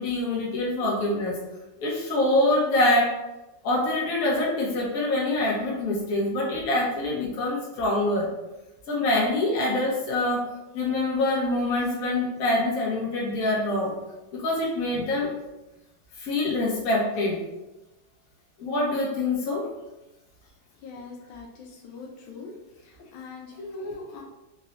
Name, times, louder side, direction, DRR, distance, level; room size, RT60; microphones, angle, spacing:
voice 1, 0.0-1.4 1.8-3.1 3.6-8.3 8.9-10.4 10.7-13.9 14.3-15.3 16.2-17.4 18.6-19.7, left 2 dB, 55° left, -4 dB, 1.2 m, -25 dB
voice 2, 20.8-22.5 22.8-24.2, left 3 dB, 80° left, 0 dB, 1.4 m, -41 dB
4.1 x 2.3 x 3.0 m, 0.99 s
omnidirectional pair, 2.3 m